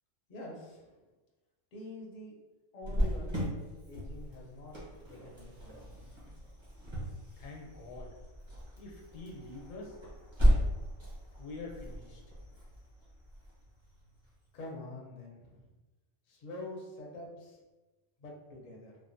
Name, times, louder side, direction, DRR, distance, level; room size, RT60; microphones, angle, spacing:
voice 1, 0.3-1.0 1.7-2.3 2.7-4.8 5.1-6.2 14.5-15.7 16.3-17.6 18.2-19.0, left 2 dB, 50° left, -2 dB, 0.5 m, -46 dB
Cricket, 2.8-14.3, equal, 25° right, 0.7 m, -35 dB
voice 2, 7.4-8.1 8.8-10.0 11.4-12.2, left 3 dB, 85° left, -1 dB, 1.1 m, -45 dB
3.2 x 2.0 x 2.5 m, 1.2 s
omnidirectional pair, 1.3 m